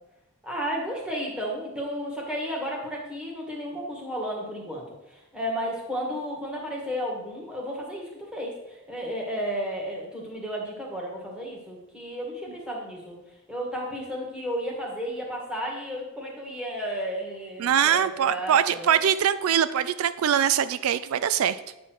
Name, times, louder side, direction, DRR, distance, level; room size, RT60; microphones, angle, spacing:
voice 1, 0.4-4.8 5.1-13.2 13.5-18.9, equal, 5° right, -2 dB, 1.8 m, -33 dB
voice 2, 17.6-21.6, right 9 dB, 80° right, 14 dB, 0.4 m, -23 dB
9.0 x 4.3 x 6.2 m, 0.96 s
head